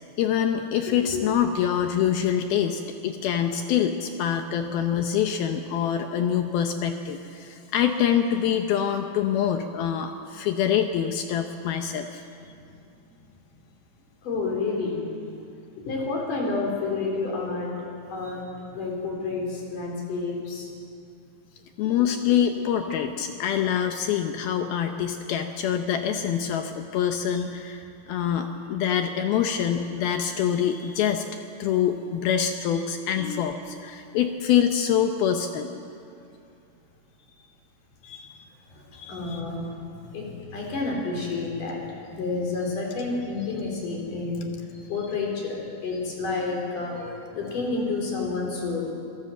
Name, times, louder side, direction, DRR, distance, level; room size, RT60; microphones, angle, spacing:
voice 1, 0.2-12.2 21.8-31.3 31.6-35.7 38.0-38.4 38.9-39.4, left 9 dB, 75° left, 6 dB, 2.3 m, -25 dB
voice 2, 0.9-1.2 12.6-12.7 14.2-15.0 15.8-17.7 18.1-18.4 18.7-20.7 33.2-33.4 39.1-48.9, left 3 dB, 45° left, -1 dB, 4.9 m, -30 dB
26.0 x 17.5 x 7.8 m, 2.6 s
omnidirectional pair, 5.4 m